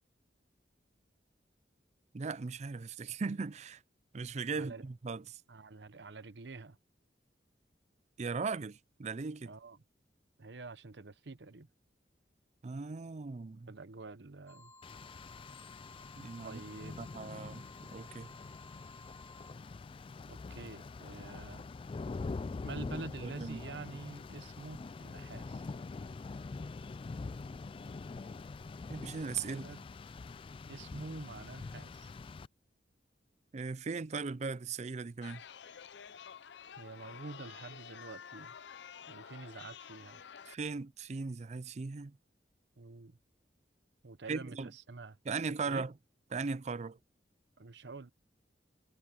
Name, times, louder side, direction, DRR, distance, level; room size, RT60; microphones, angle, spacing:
voice 1, 2.1-3.8 4.1-5.4 8.2-9.5 12.6-13.7 16.2-16.6 17.0-18.3 23.2-23.6 28.9-29.6 33.5-35.4 40.5-42.2 44.3-44.7 45.3-45.9 46.3-47.0, right 4 dB, 40° right, 0.5 m, -38 dB
voice 2, 5.5-6.8 9.4-9.8 10.4-11.7 13.7-14.7 16.4-17.0 20.3-21.6 22.6-25.7 29.5-29.8 30.7-32.1 36.8-38.5 39.1-40.2 42.8-43.2 44.0-45.2 45.7-45.9 47.6-48.1, right 3 dB, 70° right, 0.9 m, -47 dB
sound 1, 14.5-19.5, left 2 dB, 15° left, 1.3 m, -57 dB
Rain, 14.8-32.5, left 3 dB, 30° left, 0.3 m, -44 dB
Chatter, 35.2-40.5, left 7 dB, 75° left, 0.6 m, -50 dB
head